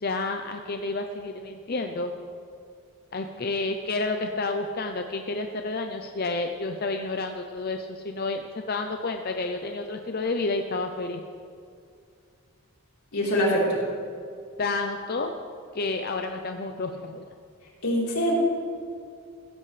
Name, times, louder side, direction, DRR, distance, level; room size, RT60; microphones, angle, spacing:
voice 1, 0.0-2.1 3.1-11.2 14.6-15.3 15.7-17.3, left 3 dB, 45° left, 5 dB, 0.6 m, -30 dB
voice 2, 13.1-13.8 17.8-18.3, equal, 85° left, -5 dB, 3.9 m, -23 dB
15.5 x 15.5 x 3.3 m, 2.3 s
head